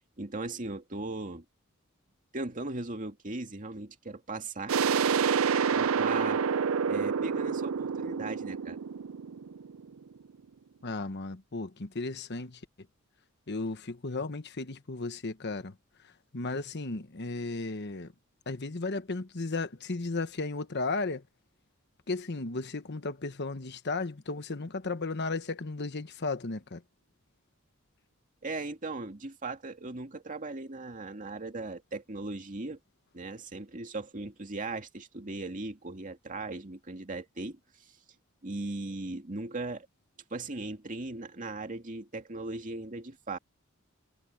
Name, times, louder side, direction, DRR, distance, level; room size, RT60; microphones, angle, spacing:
voice 1, 0.0-1.4 2.3-4.7 5.7-6.4 6.9-8.8 28.4-32.8 33.1-37.9 38.4-39.9 40.3-43.4, right 2 dB, 40° right, 2.2 m, -38 dB
sound 1, 4.7-10.2, right 6 dB, 80° right, 0.5 m, -28 dB
voice 2, 10.8-12.6 13.5-15.7 16.3-18.1 18.5-21.2 22.1-26.8, left 3 dB, 55° left, 1.2 m, -34 dB
head